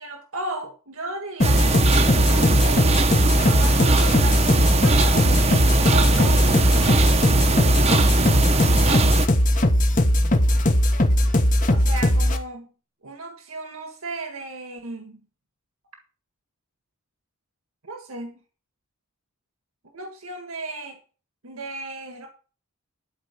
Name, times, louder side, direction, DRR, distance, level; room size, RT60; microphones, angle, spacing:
voice 1, 0.0-3.1 3.4-7.2 11.7-12.7 13.0-15.2 17.8-18.4 19.9-21.0 21.4-22.3, right 2 dB, 75° right, 1.7 m, -35 dB
sound 1, 1.4-12.4, left 1 dB, 35° left, 1.2 m, -19 dB
sound 2, 1.4-9.3, right 3 dB, 30° right, 0.9 m, -22 dB
12.5 x 4.7 x 8.2 m
head